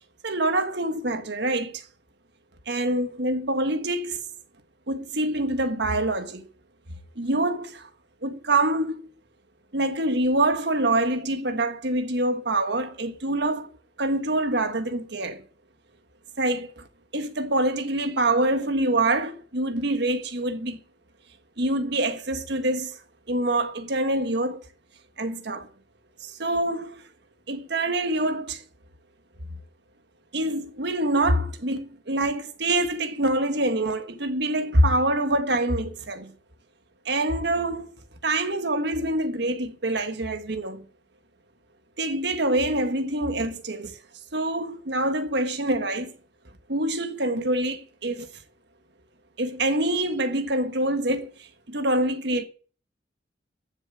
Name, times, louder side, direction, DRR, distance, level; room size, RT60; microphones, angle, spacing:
voice 1, 0.2-1.8 2.7-4.2 4.9-6.5 7.1-7.9 8.2-9.0 9.7-13.7 14.0-15.4 16.4-16.8 17.1-20.8 21.6-23.0 23.3-24.6 25.2-25.7 26.2-27.0 27.5-28.6 30.3-36.3 37.0-37.9 38.2-40.8 42.0-43.9 44.3-46.1 46.7-48.3 49.4-52.4, right 1 dB, 65° right, 1.5 m, -25 dB
14.0 x 7.0 x 7.5 m
head